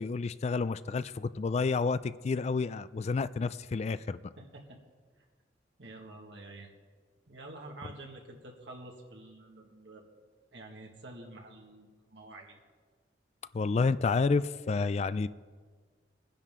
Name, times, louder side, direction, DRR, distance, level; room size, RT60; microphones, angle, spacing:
voice 1, 0.0-4.2 13.5-15.3, left 4 dB, 35° left, 15 dB, 0.3 m, -30 dB
voice 2, 4.4-4.8 5.8-6.7 7.3-10.0 10.5-12.6, right 2 dB, 80° right, 1 dB, 1.8 m, -48 dB
21.0 x 10.0 x 3.7 m, 1.6 s
head